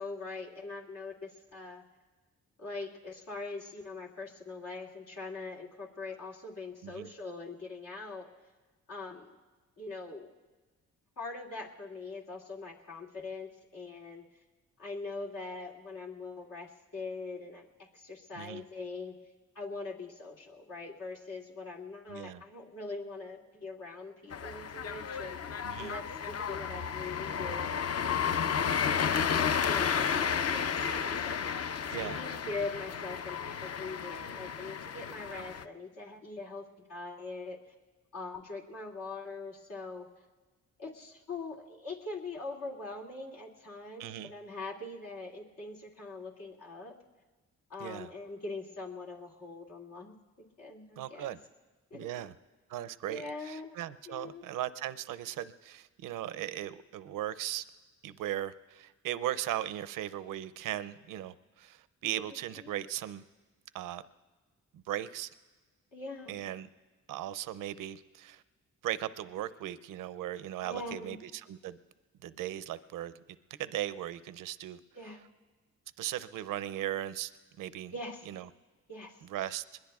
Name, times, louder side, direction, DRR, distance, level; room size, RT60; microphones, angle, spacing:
voice 1, 0.0-1.8 2.6-8.3 8.9-9.3 9.8-10.3 11.2-14.2 14.8-19.2 19.5-25.4 25.8-28.5 29.7-31.6 32.0-37.6 38.1-40.1 40.8-47.0 47.7-50.1 50.6-51.3 51.9-52.3 53.1-53.8 54.1-54.4 62.6-62.7 65.9-66.4 70.6-71.2 75.0-75.2 77.9-78.3 78.9-79.2, left 3 dB, 80° left, -3 dB, 2.4 m, -42 dB
voice 2, 22.1-22.4 25.6-25.9 31.9-32.2 44.0-44.3 47.8-48.1 51.0-51.4 51.9-52.3 52.7-57.6 58.0-63.2 63.7-64.0 64.7-65.3 66.3-66.7 67.1-68.4 68.8-71.8 72.2-73.1 73.6-74.8 76.0-77.3 77.6-77.9 78.3-78.5 79.2-79.8, right 12 dB, 85° right, 14 dB, 0.5 m, -38 dB
sound 1, 24.3-35.6, left 7 dB, 50° left, 0.7 m, -32 dB
24.5 x 21.5 x 2.3 m, 1.3 s
cardioid pair, 60°, 32 cm